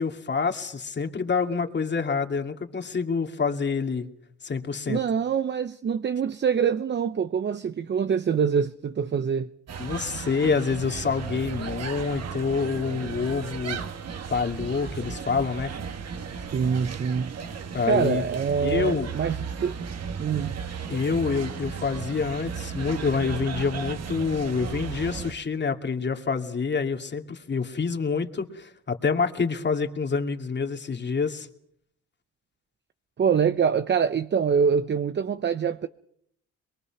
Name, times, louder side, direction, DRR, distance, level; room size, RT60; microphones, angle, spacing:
voice 1, 0.0-4.1 4.4-5.0 9.8-13.8 14.3-15.7 17.7-18.2 18.6-19.1 20.9-31.5, left 5 dB, 35° left, 2.5 m, -27 dB
voice 2, 4.9-9.5 16.5-17.3 17.9-19.8 20.2-20.6 33.2-35.9, right 6 dB, 35° right, 0.8 m, -25 dB
sound 1, 9.7-25.3, right 6 dB, 55° right, 1.8 m, -35 dB
23.0 x 22.5 x 6.0 m
cardioid pair, 90°, 30 cm